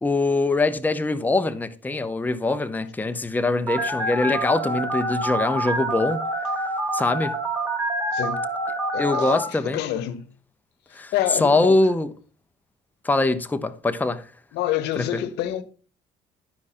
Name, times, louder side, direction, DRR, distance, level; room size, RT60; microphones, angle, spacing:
voice 1, 0.0-6.2 6.9-7.3 9.0-9.8 10.9-11.1 11.4-12.1 13.0-14.3 15.0-15.2, left 2 dB, 10° left, 0.7 m, -23 dB
Telephone, 3.7-9.4, right 1 dB, 15° right, 2.8 m, -26 dB
voice 2, 8.1-8.4 8.9-10.3 10.9-11.8 14.5-15.6, left 12 dB, 85° left, 0.9 m, -27 dB
11.5 x 4.8 x 4.2 m
cardioid pair, 110°, 17 cm